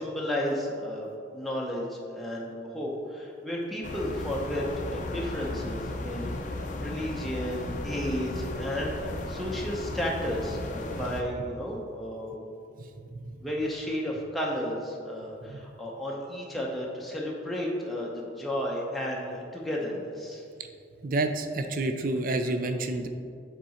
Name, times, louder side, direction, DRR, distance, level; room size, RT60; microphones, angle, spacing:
voice 1, 0.0-12.4 13.4-20.4, equal, ahead, -4 dB, 0.7 m, -33 dB
sound 1, 3.8-11.2, left 2 dB, 45° left, 0.5 m, -35 dB
voice 2, 12.8-13.4 15.4-15.6 20.6-20.7 21.0-23.1, right 2 dB, 50° right, 7 dB, 0.4 m, -30 dB
6.7 x 3.7 x 4.3 m, 2.4 s
head